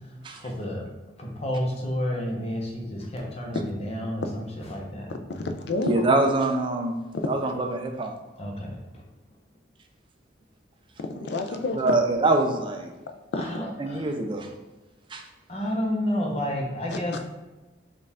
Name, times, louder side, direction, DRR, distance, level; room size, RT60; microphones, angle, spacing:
voice 1, 0.4-0.9 1.2-5.2 8.4-8.8 13.3-14.1 15.5-17.2, equal, 35° left, -1 dB, 0.8 m, -30 dB
voice 2, 5.3-6.0 11.0-12.0 13.3-13.4 16.9-17.0, left 3 dB, 65° left, 7 dB, 0.4 m, -29 dB
voice 3, 5.8-7.0 7.3-8.1 11.8-12.9 13.8-14.5 15.1-15.2, right 2 dB, 25° right, 4 dB, 0.3 m, -24 dB
4.3 x 2.4 x 3.4 m, 1.1 s
head